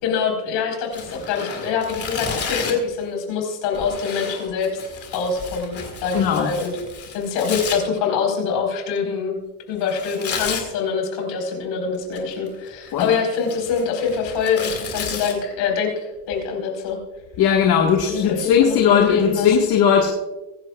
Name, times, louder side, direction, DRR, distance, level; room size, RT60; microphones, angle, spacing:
voice 1, 0.0-4.7 5.1-6.8 7.1-9.4 9.7-17.0 18.1-19.5, left 6 dB, 65° left, 2 dB, 4.6 m, -24 dB
Tearing, 0.9-2.9 3.7-7.8 9.9-10.7 11.9-12.5 12.9-15.3, left 5 dB, 30° left, 2.2 m, -32 dB
voice 2, 6.1-6.5 12.9-13.1 17.4-20.1, left 7 dB, 50° left, 1 dB, 1.7 m, -18 dB
24.0 x 11.0 x 2.4 m, 1.1 s
cardioid pair, 155°, 48 cm